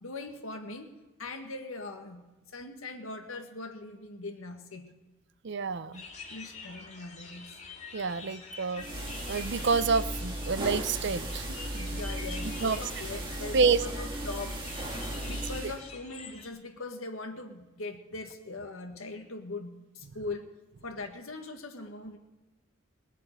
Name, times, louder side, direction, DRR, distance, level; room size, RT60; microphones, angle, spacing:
voice 1, 0.0-0.9 1.2-2.2 2.5-5.0 6.3-7.5 11.7-14.5 15.2-20.5 20.8-22.2, left 3 dB, 80° left, 5 dB, 1.8 m, -41 dB
voice 2, 5.4-6.0 7.9-8.9 9.3-11.4 12.6-12.8 13.5-13.8, right 5 dB, 55° right, 14 dB, 0.6 m, -27 dB
sound 1, 5.9-16.5, left 4 dB, 35° left, 2.2 m, -47 dB
sound 2, 8.8-15.8, right 1 dB, 25° right, 2.3 m, -36 dB
20.0 x 8.3 x 6.8 m, 1.2 s
head